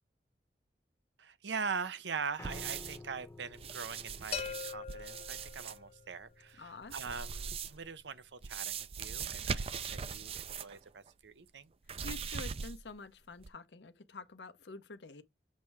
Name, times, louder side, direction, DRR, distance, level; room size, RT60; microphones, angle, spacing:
voice 1, 1.2-11.7, right 5 dB, 80° right, 0.7 m, -42 dB
Piano, 2.4-8.6, left 2 dB, 15° left, 0.8 m, -54 dB
sound 1, 2.4-3.1 3.5-5.8 6.8-7.9 8.4-10.8 11.1-11.2 11.9-13.0 13.4-13.5, right 6 dB, 35° right, 0.4 m, -40 dB
sound 2, 4.3-6.2, left 7 dB, 35° left, 0.4 m, -42 dB
voice 2, 6.6-7.0 12.0-15.2, left 3 dB, 75° left, 0.8 m, -48 dB
7.5 x 3.2 x 4.7 m
head